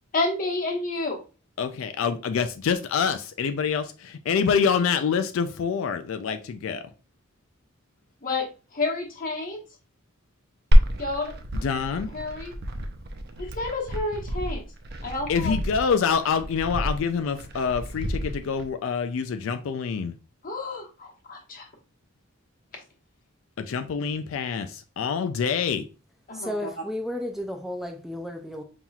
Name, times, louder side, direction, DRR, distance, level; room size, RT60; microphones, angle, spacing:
voice 1, 0.1-1.2 8.2-8.5 8.7-9.6 11.0-11.3 12.1-12.5 13.4-14.6 15.0-15.5 20.4-21.1 26.3-26.7, left 3 dB, 45° left, 1.1 m, -29 dB
voice 2, 1.6-6.8 11.5-12.1 15.3-20.1 23.6-25.8, left 6 dB, 75° left, 0.3 m, -26 dB
Glass, 10.7-18.7, equal, 50° right, 0.5 m, -26 dB
voice 3, 26.3-28.6, left 1 dB, ahead, 0.4 m, -33 dB
5.5 x 2.9 x 2.3 m
head